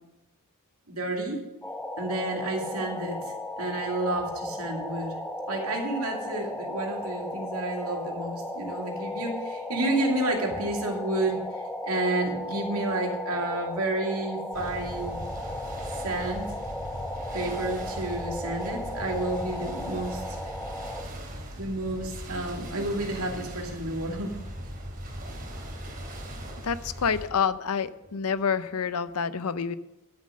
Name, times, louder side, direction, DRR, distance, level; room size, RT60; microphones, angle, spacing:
voice 1, 0.9-1.4 2.0-5.2 5.5-15.2 16.0-16.5 17.3-20.4 21.6-24.4, right 2 dB, 75° right, 1 dB, 2.5 m, -30 dB
sound 1, 1.6-21.0, left 1 dB, 5° left, 0.9 m, -35 dB
waves and cargoship, 14.5-27.3, equal, 40° right, 3.1 m, -39 dB
voice 2, 26.6-29.8, left 6 dB, 80° left, 14 dB, 0.6 m, -28 dB
12.0 x 7.3 x 6.5 m, 0.95 s
head